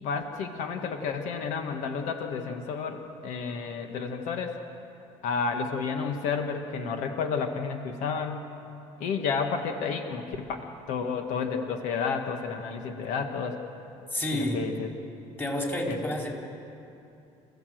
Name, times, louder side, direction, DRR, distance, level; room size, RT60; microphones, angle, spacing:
voice 1, 0.0-4.6 5.2-8.5 9.0-13.6 14.3-14.9 15.9-16.1, left 5 dB, 80° left, 5 dB, 1.7 m, -31 dB
voice 2, 14.1-14.6 15.4-16.3, left 1 dB, 15° left, 0 dB, 4.0 m, -29 dB
28.0 x 15.0 x 7.8 m, 2.8 s
cardioid pair, 115°, 12 cm